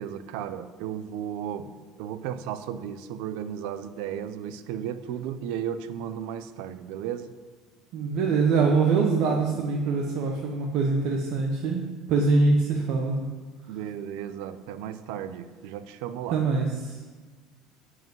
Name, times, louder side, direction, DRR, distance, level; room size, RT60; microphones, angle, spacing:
voice 1, 0.0-1.7 2.0-7.3 13.7-16.4, right 9 dB, 75° right, 12 dB, 0.6 m, -34 dB
voice 2, 7.9-13.2 16.3-17.0, right 4 dB, 55° right, 0 dB, 1.2 m, -24 dB
11.0 x 4.9 x 7.9 m, 1.4 s
cardioid pair, 160°, 0 cm